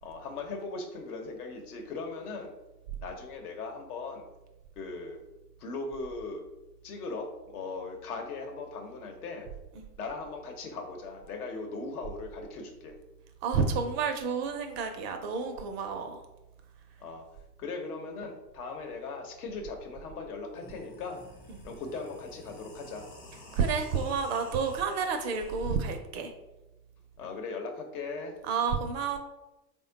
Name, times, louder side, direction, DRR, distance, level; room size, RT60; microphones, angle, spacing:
voice 1, 0.0-2.5 3.0-4.2 4.8-5.2 5.6-6.4 6.8-9.5 10.0-13.0 17.0-17.3 17.6-21.2 21.6-23.1 27.2-28.3, left 3 dB, 65° left, 3 dB, 0.9 m, -39 dB
voice 2, 13.4-16.2 21.5-21.6 23.5-26.3 28.5-29.2, right 5 dB, 40° right, 6 dB, 0.5 m, -30 dB
sound 1, 20.4-25.7, left 2 dB, 20° left, 0.5 m, -51 dB
3.5 x 2.2 x 3.8 m, 1.0 s
hypercardioid pair, 100°, 48 cm